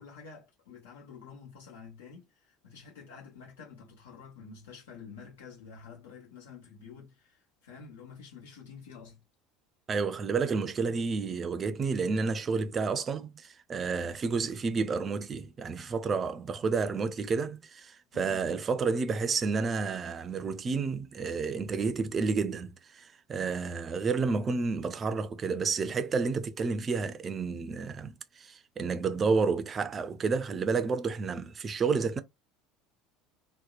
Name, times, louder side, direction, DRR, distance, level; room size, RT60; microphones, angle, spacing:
voice 1, 0.0-9.2 18.1-18.5, left 6 dB, 70° left, 0.9 m, -49 dB
voice 2, 9.9-32.2, right 4 dB, 30° right, 0.4 m, -30 dB
2.7 x 2.1 x 2.3 m
figure-of-eight pair, 65°, 0 cm